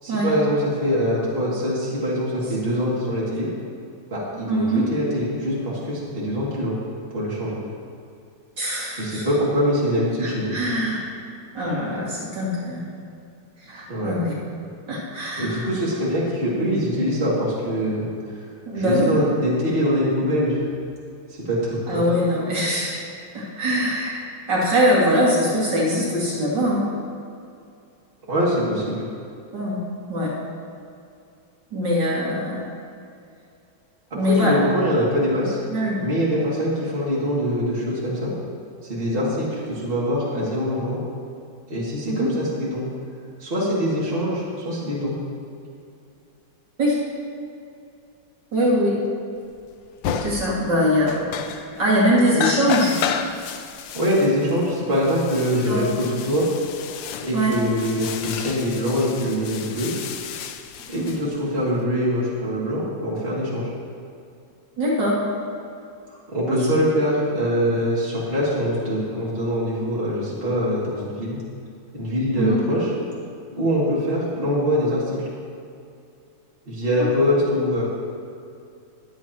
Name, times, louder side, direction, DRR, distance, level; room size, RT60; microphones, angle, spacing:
voice 1, 0.0-3.5 4.1-6.8 7.1-7.6 8.9-10.6 13.9-14.2 15.4-18.1 18.7-20.6 21.5-22.0 28.3-29.0 34.1-35.6 36.0-38.3 38.8-41.0 41.7-42.9 43.4-45.2 53.9-56.5 57.2-59.9 60.9-63.7 66.3-71.4 71.9-72.9 73.6-75.3 76.7-77.8, equal, 30° right, -7 dB, 2.7 m, -23 dB
voice 2, 4.4-4.8 8.6-9.3 10.2-11.0 11.5-12.9 13.6-14.3 14.9-15.7 18.7-19.2 21.9-23.0 23.3-26.9 29.5-29.8 30.1-30.3 31.7-32.6 34.1-34.5 35.7-36.0 42.0-42.3 46.8-47.0 48.5-49.0 50.2-51.3 51.8-53.0 55.5-55.8 57.3-57.6 64.8-65.2 66.5-66.6 72.3-72.6, equal, 65° right, -7 dB, 3.0 m, -22 dB
sound 1, 49.6-49.7 50.0-50.7 51.0-52.0 52.3-61.8, left 7 dB, 75° left, 1.3 m, -32 dB
22.0 x 7.8 x 3.0 m, 2.5 s
omnidirectional pair, 2.1 m